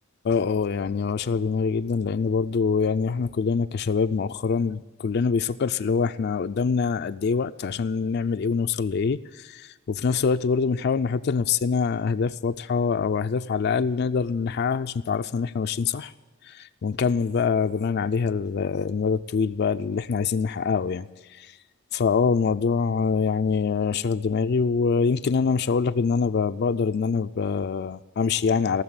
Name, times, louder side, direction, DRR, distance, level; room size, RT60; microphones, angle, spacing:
voice 1, 0.2-16.1 16.4-21.5 21.9-28.8, left 5 dB, 55° left, 9 dB, 0.4 m, -25 dB
18.0 x 6.7 x 9.6 m, 1.3 s
head